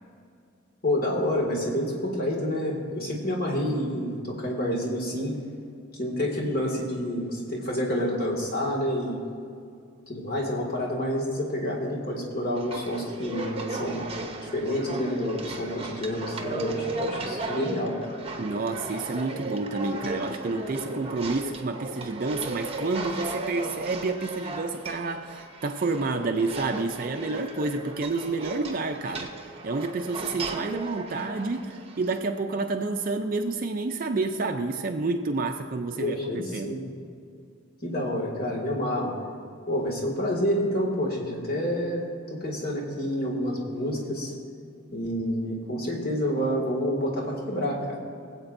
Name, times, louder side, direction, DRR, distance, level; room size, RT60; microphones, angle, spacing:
voice 1, 0.8-5.4 6.0-9.2 10.1-14.1 14.4-17.9 36.0-36.8 37.8-39.1 39.7-42.0 42.3-44.3 44.9-48.0, equal, 50° left, -2 dB, 2.1 m, -28 dB
sound 1, 12.5-32.2, right 2 dB, 30° right, 0.8 m, -35 dB
voice 2, 18.4-36.8, right 3 dB, 45° right, 4 dB, 0.5 m, -29 dB
23.0 x 8.0 x 2.6 m, 2.4 s
head